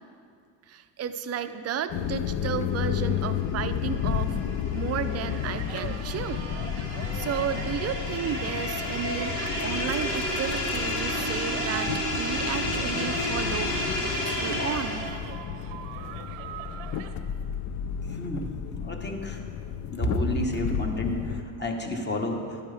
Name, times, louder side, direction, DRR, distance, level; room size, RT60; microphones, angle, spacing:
voice 1, 0.7-4.4 4.7-6.5 7.1-11.9 12.2-13.7 14.2-15.1, right 8 dB, 35° right, 10 dB, 0.5 m, -33 dB
sound 1, 1.9-21.4, left 9 dB, 40° left, 0.4 m, -33 dB
sound 2, 3.4-15.3, left 1 dB, 70° left, 2.2 m, -31 dB
sound 3, 5.1-17.1, right 9 dB, 85° right, 0.8 m, -42 dB
voice 2, 18.1-18.5 18.8-19.4 19.9-22.6, left 1 dB, 25° left, 2 dB, 1.2 m, -30 dB
11.5 x 9.8 x 3.4 m, 2.2 s
cardioid pair, 105°, 45 cm